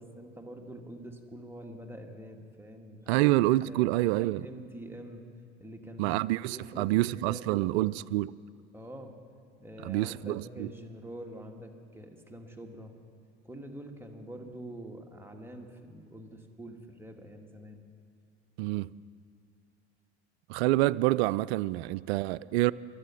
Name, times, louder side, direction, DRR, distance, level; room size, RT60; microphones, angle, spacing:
voice 1, 0.0-3.2 3.7-3.9 4.2-5.2 5.6-6.2 6.5-7.9 8.7-9.1 9.6-12.9 13.4-17.8, right 1 dB, 5° right, 2.0 m, -45 dB
voice 2, 3.1-4.5 6.0-8.3 9.8-10.7 18.6-18.9 20.5-22.7, right 17 dB, 65° right, 0.5 m, -27 dB
24.0 x 8.5 x 5.8 m
hypercardioid pair, 70°, 35 cm